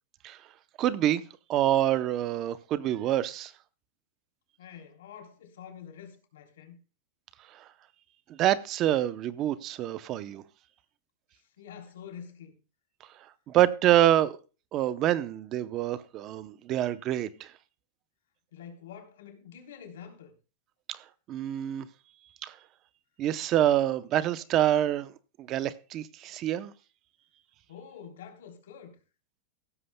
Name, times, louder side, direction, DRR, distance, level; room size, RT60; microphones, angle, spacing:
voice 1, 0.8-1.2 1.5-3.5 7.5-7.6 8.4-10.4 13.5-14.4 14.7-17.5 20.9-21.0 21.3-21.9 22.4-22.6 23.2-25.1 25.4-26.7, right 12 dB, 30° right, 0.7 m, -26 dB
voice 2, 4.6-6.8 11.3-12.6 18.5-20.3 27.7-29.0, left 8 dB, 85° left, 3.4 m, -47 dB
15.5 x 13.5 x 2.2 m
supercardioid pair, 165°, 0 cm